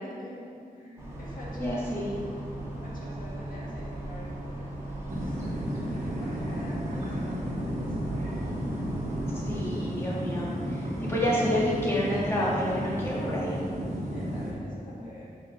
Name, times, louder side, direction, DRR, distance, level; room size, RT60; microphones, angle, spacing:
voice 1, 0.0-1.9 2.7-5.4 6.0-8.2 14.1-15.4, left 1 dB, 65° left, -6 dB, 1.3 m, -47 dB
sound 1, 1.0-9.6, right 1 dB, 20° right, 1.5 m, -38 dB
voice 2, 1.6-2.1 9.4-13.6, equal, 15° left, -7 dB, 1.5 m, -29 dB
sound 2, 5.1-14.5, equal, 50° right, 1.4 m, -33 dB
5.7 x 4.7 x 5.3 m, 2.4 s
wide cardioid pair, 175°, 15 cm